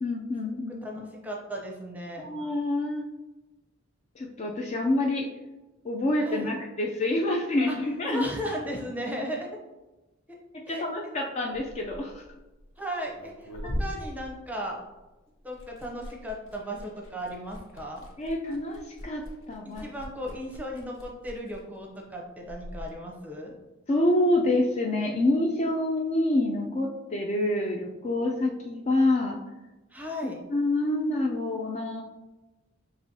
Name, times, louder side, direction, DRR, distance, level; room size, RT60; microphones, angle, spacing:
voice 1, 0.0-1.1 2.2-3.0 4.2-5.3 5.8-8.3 10.7-12.2 18.2-19.8 23.9-29.4 30.2-32.0, left 1 dB, 30° left, 1 dB, 0.3 m, -27 dB
voice 2, 0.8-2.3 6.2-6.5 7.7-7.8 8.1-9.5 10.7-10.8 12.8-14.8 15.4-18.0 19.6-23.5 29.9-30.4, equal, 10° right, -1 dB, 0.6 m, -36 dB
Liquid, 11.4-15.1 15.4-22.9, equal, 65° left, 0.7 m, -41 dB
6.0 x 2.9 x 2.7 m, 1.1 s
head